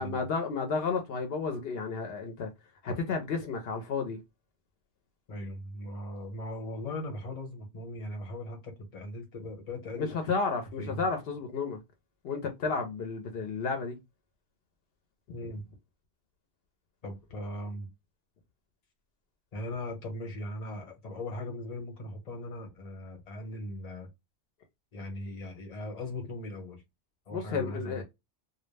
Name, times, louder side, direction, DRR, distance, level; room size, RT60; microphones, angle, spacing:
voice 1, 0.0-2.5 2.8-4.2 10.0-11.8 12.2-14.0 15.3-15.4 27.3-28.0, left 4 dB, 75° left, 0.8 m, -32 dB
voice 2, 5.3-10.1 10.8-11.1 15.3-15.6 17.0-17.9 19.5-24.1 24.9-26.8 27.3-28.0, left 1 dB, 40° left, 0.9 m, -39 dB
2.3 x 2.0 x 3.1 m
omnidirectional pair, 1.1 m